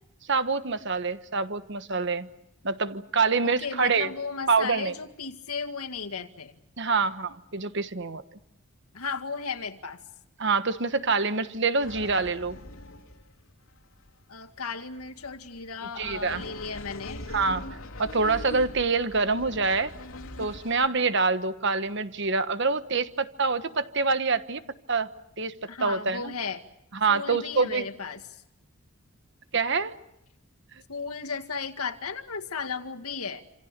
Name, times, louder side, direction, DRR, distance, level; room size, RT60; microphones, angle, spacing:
voice 1, 0.3-2.3 2.6-4.1 4.5-4.9 6.8-8.2 10.4-12.6 16.0-16.4 17.3-17.7 18.0-19.9 20.4-24.6 24.9-25.1 25.4-26.3 27.0-27.9 29.5-29.9, right 4 dB, 55° right, 11 dB, 1.3 m, -26 dB
voice 2, 3.4-6.5 8.9-10.0 14.3-17.3 25.7-26.6 27.1-28.2 30.9-33.4, left 5 dB, 85° left, 6 dB, 2.0 m, -35 dB
sound 1, 11.8-20.9, left 1 dB, 70° left, 2.8 m, -42 dB
27.5 x 27.5 x 6.7 m, 0.83 s
head